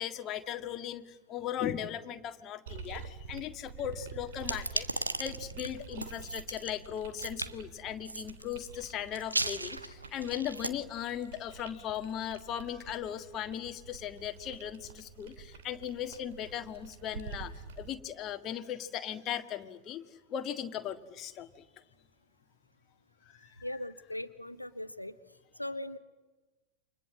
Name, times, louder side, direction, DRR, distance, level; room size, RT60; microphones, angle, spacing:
voice 1, 0.0-21.6 23.4-23.5, left 10 dB, 30° left, 7 dB, 1.7 m, -38 dB
sound 1, 2.7-17.9, right 6 dB, 55° right, 2.8 m, -48 dB
sound 2, 4.4-6.7 7.2-7.5 8.1-8.7 9.2-10.7, right 2 dB, 85° right, 1.3 m, -35 dB
voice 2, 23.6-25.1 25.6-26.0, left 1 dB, 85° left, 10 dB, 1.1 m, -39 dB
29.0 x 26.0 x 7.6 m, 1.2 s
figure-of-eight pair, 90°, 0 cm